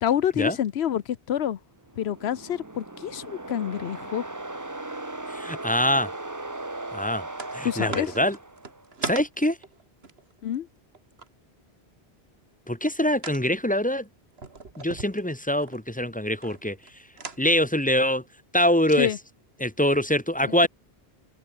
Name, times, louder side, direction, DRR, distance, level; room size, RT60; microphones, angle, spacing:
voice 1, 0.0-1.6 2.0-4.2 7.6-8.1 10.4-10.7 19.0-19.2 20.4-20.7, left 10 dB, 85° left, 1.0 m, -27 dB
sound 1, 1.8-8.9, right 2 dB, 20° right, 1.2 m, -38 dB
voice 2, 5.3-6.1 6.9-7.2 7.5-8.4 9.0-9.6 12.7-14.1 14.8-16.8 17.4-18.2 18.5-19.1 19.6-20.7, left 1 dB, 10° left, 1.3 m, -24 dB
sound 2, 7.3-7.6 7.9-11.3 13.2-13.4 14.3-15.8 16.4-16.9 17.2-17.4, right 4 dB, 75° right, 2.5 m, -37 dB
omnidirectional pair, 1.0 m